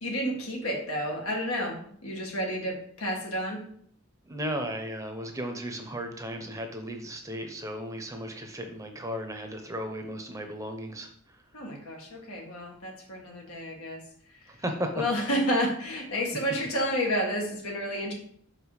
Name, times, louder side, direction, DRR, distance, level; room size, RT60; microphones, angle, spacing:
voice 1, 0.0-3.6 11.5-14.0 15.0-18.1, equal, 85° left, 0 dB, 1.8 m, -30 dB
voice 2, 4.3-11.4 14.5-14.9, equal, 15° right, 5 dB, 0.7 m, -35 dB
5.8 x 4.9 x 4.9 m, 0.63 s
head